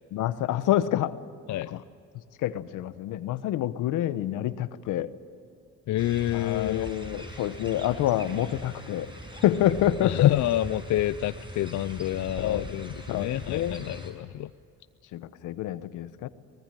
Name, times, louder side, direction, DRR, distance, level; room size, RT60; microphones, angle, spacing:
voice 1, 0.1-1.2 1.7-1.8 2.4-5.1 6.3-10.3 12.4-12.6 13.1-13.8 15.1-16.3, left 12 dB, 90° left, 14 dB, 1.0 m, -27 dB
voice 2, 5.9-6.9 10.0-14.5, left 14 dB, 70° left, 13 dB, 0.5 m, -28 dB
sound 1, 6.0-14.1, right 1 dB, 15° right, 6.1 m, -41 dB
24.5 x 19.5 x 9.1 m, 2.5 s
cardioid pair, 90°, 30 cm